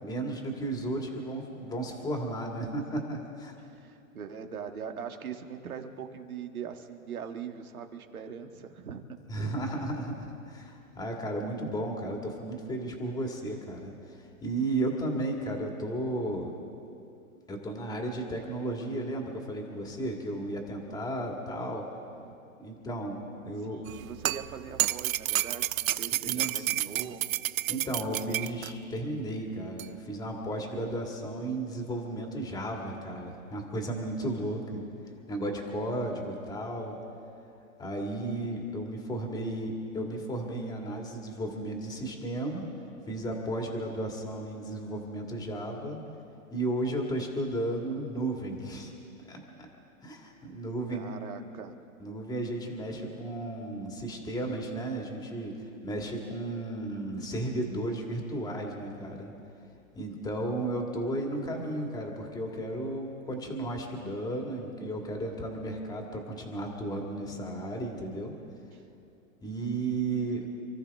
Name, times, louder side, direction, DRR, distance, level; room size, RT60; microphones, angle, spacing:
voice 1, 0.0-3.6 9.3-16.5 17.5-21.8 22.6-23.2 23.4-23.8 26.1-27.1 27.7-34.9 35.3-37.0 37.8-42.6 43.1-46.0 46.5-48.9 49.3-49.7 50.0-51.1 52.0-59.3 60.0-68.3 69.4-70.5, right 1 dB, 10° left, 1 dB, 2.0 m, -34 dB
voice 2, 3.8-9.0 22.2-22.4 23.6-27.2 50.9-51.7 68.7-68.8, right 7 dB, 90° right, 5 dB, 1.8 m, -41 dB
sound 1, 23.9-28.7 29.8-29.9, right 14 dB, 70° right, 0.6 m, -30 dB
28.5 x 14.0 x 3.5 m, 2.6 s
hypercardioid pair, 140°, 42 cm